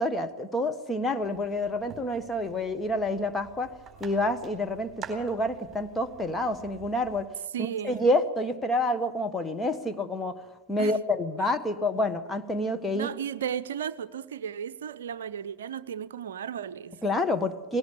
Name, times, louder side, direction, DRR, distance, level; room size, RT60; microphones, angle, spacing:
voice 1, 0.0-3.7 4.0-7.3 7.6-10.4 10.7-13.1 17.0-17.8, left 1 dB, 10° left, 1.4 m, -28 dB
sound 1, 1.2-7.2, right 6 dB, 20° right, 4.2 m, -48 dB
voice 2, 7.5-8.0 10.8-10.9 12.9-17.0, right 8 dB, 60° right, 0.7 m, -34 dB
19.0 x 17.0 x 8.4 m
figure-of-eight pair, 90°, 0 cm